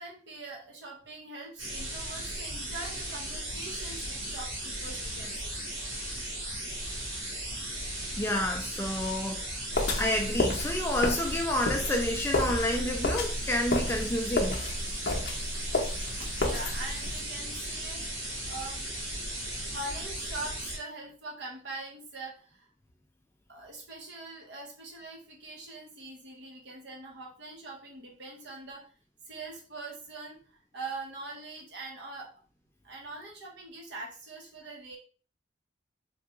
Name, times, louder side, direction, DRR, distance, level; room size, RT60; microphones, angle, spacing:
voice 1, 0.0-5.6 16.2-18.9 19.7-22.6 23.5-28.9 29.3-30.4 30.7-32.3 32.8-35.0, right 2 dB, 65° right, 0.9 m, -43 dB
sound 1, 1.6-20.8, right 1 dB, 85° right, 1.3 m, -36 dB
voice 2, 8.1-9.6 9.9-14.6, left 1 dB, 15° left, 0.3 m, -29 dB
sound 2, 9.7-17.2, left 2 dB, 65° left, 0.6 m, -31 dB
3.4 x 2.3 x 2.8 m
head